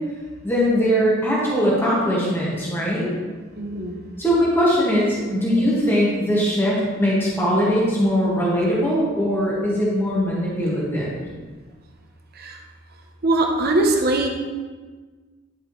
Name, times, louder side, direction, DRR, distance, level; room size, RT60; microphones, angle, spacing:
voice 1, 0.4-3.1 4.2-11.2, equal, 10° left, -7 dB, 1.9 m, -21 dB
voice 2, 3.6-4.0 12.4-12.5 13.2-14.3, right 2 dB, 50° right, 2 dB, 0.9 m, -21 dB
10.5 x 5.3 x 3.2 m, 1.4 s
head